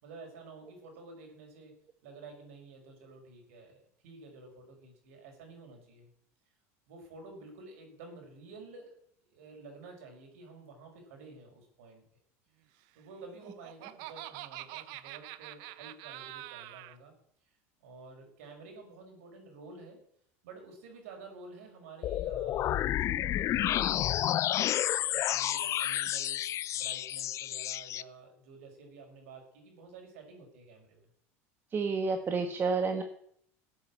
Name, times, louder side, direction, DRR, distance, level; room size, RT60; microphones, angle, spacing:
voice 1, 0.0-1.7 2.0-6.1 6.9-9.0 9.3-12.0 12.9-17.1 17.8-20.0 20.4-24.7 25.1-26.4 26.7-31.1, right 3 dB, 80° right, 3 dB, 5.8 m, -51 dB
Laughter, 13.2-17.0, right 16 dB, 65° right, 0.9 m, -45 dB
sound 1, 22.0-28.0, left 12 dB, 40° left, 0.6 m, -30 dB
voice 2, 31.7-33.0, right 4 dB, 30° right, 5 dB, 1.4 m, -30 dB
14.5 x 8.6 x 8.6 m, 0.67 s
supercardioid pair, 115°, 7 cm